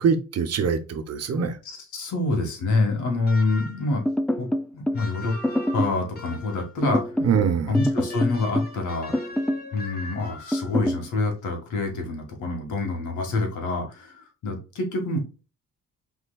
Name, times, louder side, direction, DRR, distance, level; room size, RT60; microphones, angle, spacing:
voice 1, 0.0-1.6 7.2-7.8, right 6 dB, 55° right, 1.0 m, -23 dB
voice 2, 1.9-4.0 4.4-4.5 4.7-5.4 5.7-7.0 7.7-9.1 9.7-15.2, left 3 dB, 80° left, 1.9 m, -26 dB
sound 1, 3.3-4.0 4.9-6.8 7.7-10.9, left 2 dB, 30° left, 1.8 m, -41 dB
sound 2, 4.1-5.0 5.4-6.0 6.8-7.4 7.7-8.8 9.1-9.7 10.5-11.0, equal, 5° left, 0.4 m, -25 dB
6.1 x 3.7 x 2.3 m
cardioid pair, 90°, 30 cm